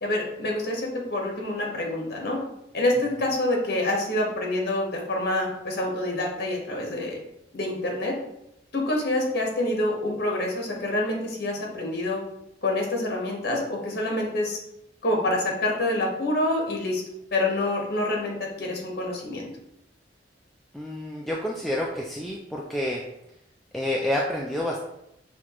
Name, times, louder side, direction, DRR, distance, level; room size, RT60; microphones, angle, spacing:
voice 1, 0.0-2.4 2.7-7.2 7.5-8.2 8.7-12.2 12.6-14.6 15.0-17.0 17.3-19.5, left 1 dB, 60° left, 0 dB, 1.1 m, -27 dB
voice 2, 20.7-23.0 23.7-24.8, left 1 dB, ahead, -3 dB, 0.3 m, -28 dB
6.2 x 2.4 x 2.9 m, 0.83 s
head